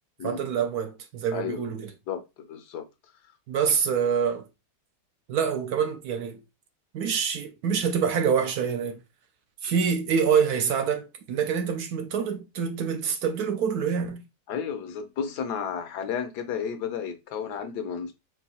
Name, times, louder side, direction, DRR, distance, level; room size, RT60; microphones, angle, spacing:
voice 1, 0.2-1.9 3.5-4.5 5.3-6.4 6.9-9.0 9.6-14.2, right 7 dB, 70° right, 1.0 m, -26 dB
voice 2, 1.3-1.6 2.1-2.2 2.5-2.9 14.5-18.1, left 7 dB, 70° left, 1.2 m, -32 dB
4.7 x 2.3 x 4.1 m
omnidirectional pair, 1.9 m